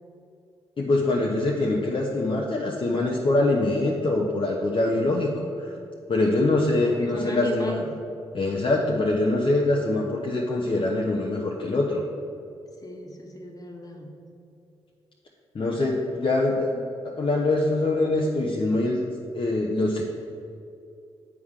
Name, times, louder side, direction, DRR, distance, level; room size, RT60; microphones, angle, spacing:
voice 1, 0.8-5.7 6.1-7.8 8.3-12.0 15.5-19.0 19.3-20.0, left 2 dB, 50° left, -2 dB, 0.9 m, -24 dB
voice 2, 6.2-8.0 12.8-14.2, left 1 dB, 35° left, 1 dB, 1.4 m, -36 dB
8.3 x 3.7 x 6.4 m, 2.6 s
supercardioid pair, 45°, 11 cm